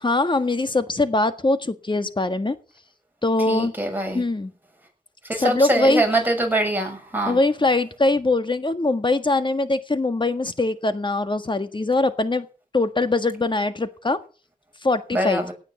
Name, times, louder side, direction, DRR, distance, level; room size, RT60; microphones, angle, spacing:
voice 1, 0.0-2.5 3.2-3.7 4.1-4.5 5.3-6.2 7.2-12.5 12.7-14.2 14.8-15.5, left 2 dB, 35° left, 9 dB, 1.7 m, -22 dB
voice 2, 3.5-4.2 5.3-7.4 15.1-15.5, right 1 dB, 15° right, 2 dB, 6.8 m, -23 dB
17.5 x 9.1 x 7.1 m, 0.38 s
wide cardioid pair, 75°, 15 cm